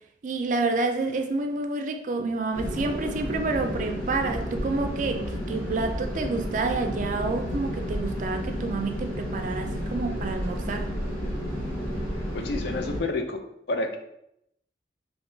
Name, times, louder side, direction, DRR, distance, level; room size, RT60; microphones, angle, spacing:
voice 1, 0.2-10.9, right 3 dB, 45° right, 0.3 m, -29 dB
sound 1, 2.5-13.0, equal, 30° left, 1.4 m, -31 dB
voice 2, 12.3-14.0, left 2 dB, 60° left, 0.4 m, -30 dB
3.6 x 3.0 x 2.6 m
head